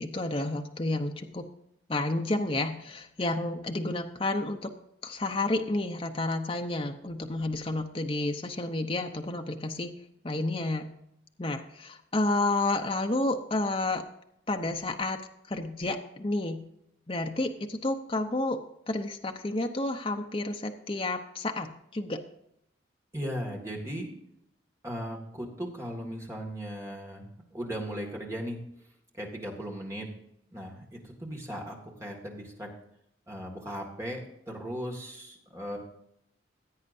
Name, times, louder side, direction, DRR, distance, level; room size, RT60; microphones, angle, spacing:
voice 1, 0.0-1.5 1.9-4.7 5.0-9.9 10.2-10.9 11.4-14.0 14.5-15.2 15.5-16.6 17.1-18.6 18.9-22.2, left 2 dB, 30° left, 4 dB, 0.7 m, -30 dB
voice 2, 23.1-24.1 24.8-27.3 27.5-28.6 29.1-30.1 30.5-32.7 33.3-35.8, equal, 15° right, 0 dB, 2.1 m, -37 dB
16.5 x 8.6 x 2.7 m, 0.77 s
head